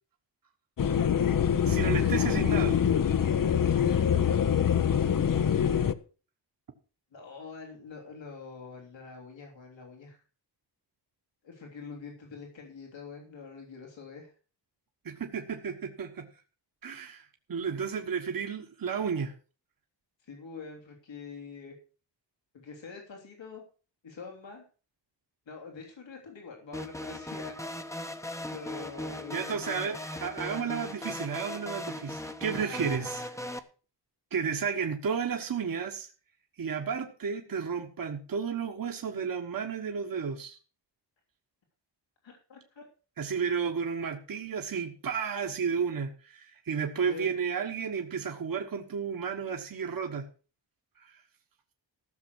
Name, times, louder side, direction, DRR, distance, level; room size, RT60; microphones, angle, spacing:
sound 1, 0.8-5.9, left 8 dB, 50° left, 0.8 m, -25 dB
voice 1, 1.7-2.7 15.0-16.3 16.8-17.2 17.5-19.3 29.3-33.2 34.3-36.1 36.6-40.6 43.2-50.3 51.0-51.1, right 6 dB, 50° right, 4 dB, 1.4 m, -32 dB
voice 2, 2.2-3.0 7.1-10.2 11.4-14.3 20.2-21.8 22.5-23.6 24.0-24.6 25.5-27.6 28.5-30.0 32.6-33.2 42.2-42.8 47.0-47.3, left 5 dB, 85° left, 1 dB, 3.3 m, -45 dB
sound 2, 26.7-33.6, left 1 dB, 5° left, 0.9 m, -38 dB
15.0 x 6.9 x 6.1 m, 0.37 s
wide cardioid pair, 155°, 44 cm